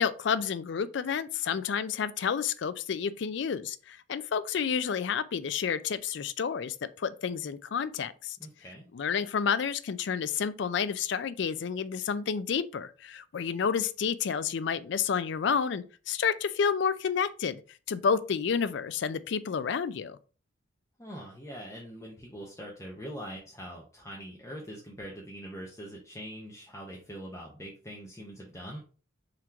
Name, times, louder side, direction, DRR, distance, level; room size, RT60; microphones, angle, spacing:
voice 1, 0.0-8.4 8.9-17.6 17.9-20.2, left 6 dB, 60° left, 0.4 m, -30 dB
voice 2, 8.4-8.9 21.0-28.8, equal, 15° left, 0.7 m, -43 dB
3.8 x 3.0 x 4.4 m
head